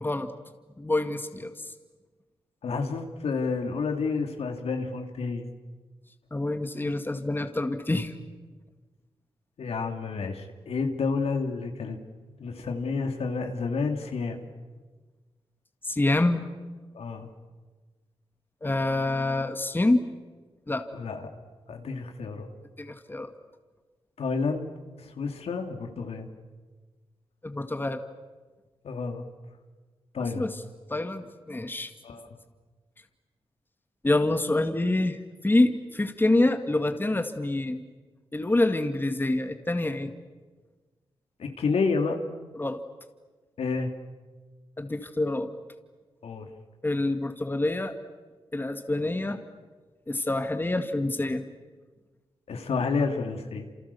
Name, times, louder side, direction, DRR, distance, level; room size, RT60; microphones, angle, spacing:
voice 1, 0.0-0.3 0.8-1.5 6.3-8.1 15.8-16.4 18.6-20.0 20.7-20.8 22.8-23.3 27.4-28.0 30.4-30.6 30.9-31.9 34.0-37.8 38.3-40.1 42.6-42.8 44.8-45.5 46.8-47.9 48.5-49.4 50.1-51.4, left 2 dB, 20° left, 7 dB, 2.0 m, -26 dB
voice 2, 2.6-5.5 9.6-12.0 12.4-14.5 16.9-17.3 20.9-21.3 21.7-22.5 24.2-24.7 25.0-26.3 28.8-29.2 30.1-30.5 32.0-32.3 41.4-42.2 43.6-43.9 46.2-46.5 52.5-53.6, left 4 dB, 75° left, 4 dB, 2.8 m, -30 dB
29.5 x 28.0 x 7.1 m, 1.4 s
cardioid pair, 70°, 10 cm